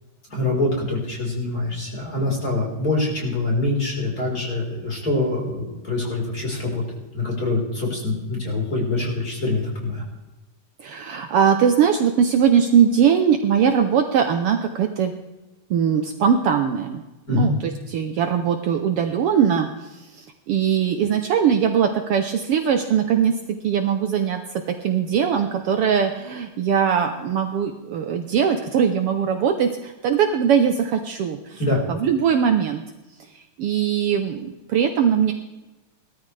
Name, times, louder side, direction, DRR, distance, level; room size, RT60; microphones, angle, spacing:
voice 1, 0.3-6.8 7.1-10.0 17.3-17.5 31.6-31.8, left 2 dB, 25° left, -2 dB, 4.4 m, -24 dB
voice 2, 10.8-15.1 15.7-17.0 17.3-32.8 33.3-35.3, right 7 dB, 90° right, 5 dB, 1.2 m, -21 dB
19.0 x 13.0 x 3.3 m, 1.1 s
omnidirectional pair, 3.7 m